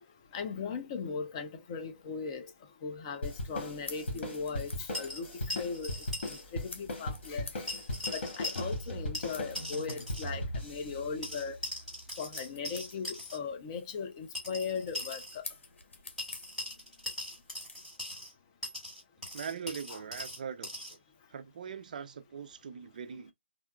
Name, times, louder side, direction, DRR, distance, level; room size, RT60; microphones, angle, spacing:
voice 1, 0.3-2.5 2.8-5.9 6.2-7.7 8.1-11.6 12.2-15.5 19.9-20.0, left 5 dB, 25° left, 0.5 m, -38 dB
sound 1, 3.2-12.1, left 1 dB, 65° left, 1.9 m, -39 dB
sound 2, 3.3-17.9, left 3 dB, 80° left, 1.0 m, -52 dB
Coins Falling, 4.9-6.4 6.7-6.8 7.7-8.9 9.1-10.3 11.2-13.4 14.3-15.4 16.2-18.3 18.6-21.0, left 1 dB, ahead, 1.5 m, -40 dB
voice 2, 19.3-21.0 21.3-23.3, right 7 dB, 40° right, 0.3 m, -41 dB
3.6 x 2.3 x 2.3 m
hypercardioid pair, 160°, 6 cm